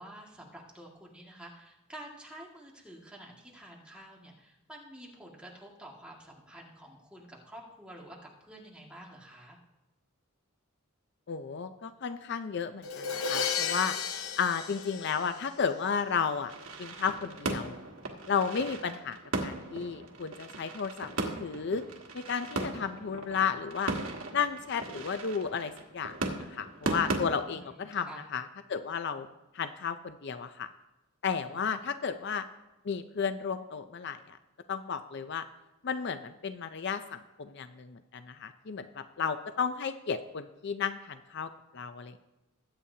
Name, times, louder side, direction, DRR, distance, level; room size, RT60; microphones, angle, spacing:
voice 1, 0.0-9.6 27.4-28.2 31.3-31.7, right 1 dB, 5° right, -3 dB, 1.9 m, -49 dB
voice 2, 11.3-14.0 14.4-16.5 16.8-17.8 18.3-19.2 19.4-21.8 22.1-23.9 24.3-29.3 29.5-30.7 31.2-32.4 32.8-34.4 34.7-35.5 35.8-42.2, left 6 dB, 55° left, 10 dB, 0.5 m, -33 dB
Crash cymbal, 12.8-15.8, left 7 dB, 80° left, 0.9 m, -34 dB
sound 1, 16.5-27.2, right 2 dB, 80° right, 1.6 m, -37 dB
21.5 x 8.6 x 2.8 m, 1.0 s
head